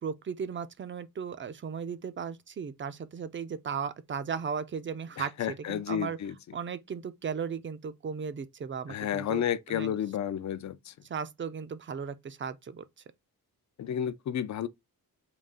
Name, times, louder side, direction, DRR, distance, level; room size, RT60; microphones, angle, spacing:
voice 1, 0.0-5.3 5.7-6.2 6.5-9.4 9.7-10.0 11.1-12.8, right 6 dB, 35° right, 0.4 m, -36 dB
voice 2, 5.2-6.3 8.9-10.9 13.8-14.7, left 9 dB, 50° left, 0.5 m, -31 dB
3.9 x 2.4 x 3.6 m
wide cardioid pair, 120°, 36 cm